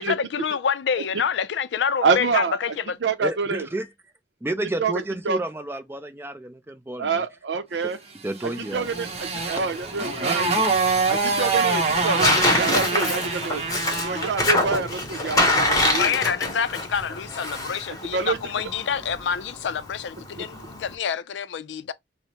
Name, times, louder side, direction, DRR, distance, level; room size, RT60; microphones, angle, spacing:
voice 1, 0.0-3.0 14.1-14.3 15.9-21.9, left 7 dB, 90° left, 0.4 m, -27 dB
voice 2, 2.0-2.8 3.0-3.7 4.8-4.9 5.2-5.4 7.0-8.0 8.6-10.7 11.1-13.6 14.0-16.1 18.1-18.4 20.4-20.5, right 4 dB, 80° right, 0.6 m, -26 dB
voice 3, 3.2-3.9 4.4-7.3 8.2-8.8, right 1 dB, 15° right, 0.5 m, -31 dB
Motorcycle, 8.4-14.4, right 4 dB, 35° right, 0.9 m, -25 dB
Tearing, 8.7-20.9, left 1 dB, 20° left, 1.0 m, -26 dB
4.7 x 2.1 x 2.8 m
head